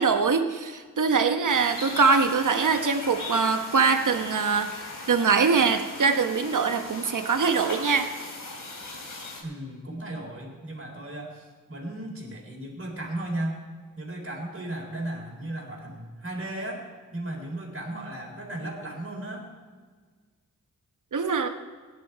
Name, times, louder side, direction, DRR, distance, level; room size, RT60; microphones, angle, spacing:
voice 1, 0.0-8.1 21.1-21.5, right 5 dB, 70° right, 7 dB, 1.2 m, -23 dB
sound 1, 1.5-9.4, left 2 dB, 75° left, 2.9 m, -39 dB
voice 2, 9.4-13.6 13.9-19.5, right 1 dB, 45° right, 0 dB, 4.0 m, -35 dB
17.0 x 10.5 x 4.7 m, 1.5 s
cardioid pair, 60°, 32 cm